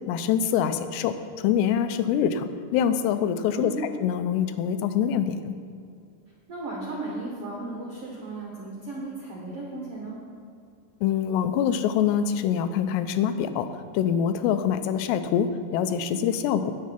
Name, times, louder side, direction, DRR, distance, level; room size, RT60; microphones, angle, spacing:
voice 1, 0.1-3.7 4.0-5.5 11.0-16.7, left 8 dB, 90° left, 10 dB, 2.8 m, -25 dB
voice 2, 3.4-3.8 6.5-10.2, right 2 dB, 70° right, -3 dB, 1.4 m, -35 dB
9.7 x 8.5 x 5.7 m, 2.3 s
omnidirectional pair, 4.8 m